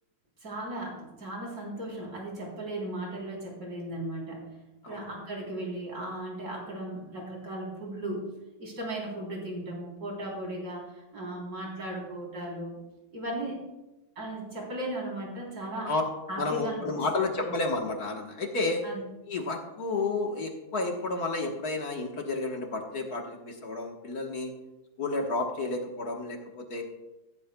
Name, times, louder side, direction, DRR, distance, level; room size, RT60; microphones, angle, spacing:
voice 1, 0.4-4.5 4.9-8.3 8.6-12.8 13.1-13.6 14.2-15.9 16.3-17.1 18.8-19.0, right 1 dB, 55° right, -2 dB, 4.2 m, -36 dB
voice 2, 16.4-18.8 19.3-24.5 25.0-26.8, left 3 dB, 55° left, 1 dB, 1.8 m, -31 dB
14.5 x 14.5 x 2.3 m, 1.0 s
omnidirectional pair, 2.1 m